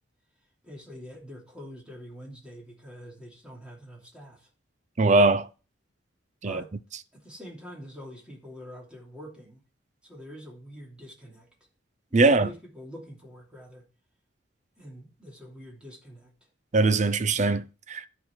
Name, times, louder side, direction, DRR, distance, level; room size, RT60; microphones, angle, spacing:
voice 1, 0.6-4.5 6.4-6.7 7.1-9.6 10.0-11.5 12.2-13.9 14.8-16.3, equal, 5° right, 2.9 m, -45 dB
voice 2, 5.0-5.5 6.4-6.6 12.1-12.5 16.7-18.1, right 3 dB, 35° right, 0.6 m, -21 dB
12.0 x 4.5 x 4.4 m
head